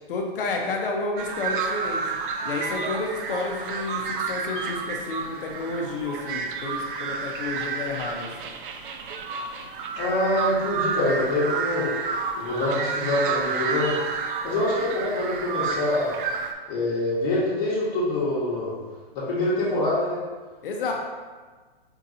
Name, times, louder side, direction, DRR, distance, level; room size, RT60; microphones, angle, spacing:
voice 1, 0.1-2.0 2.4-8.3 20.6-20.9, left 3 dB, 60° left, 1 dB, 0.6 m, -30 dB
sound 1, 1.2-16.5, right 5 dB, 60° right, 0.4 m, -30 dB
voice 2, 10.0-11.9 12.3-14.0 14.4-16.1 16.7-18.7 19.1-20.2, left 1 dB, 35° left, -11 dB, 1.1 m, -25 dB
4.6 x 2.6 x 2.6 m, 1.4 s
hypercardioid pair, 130°, 31 cm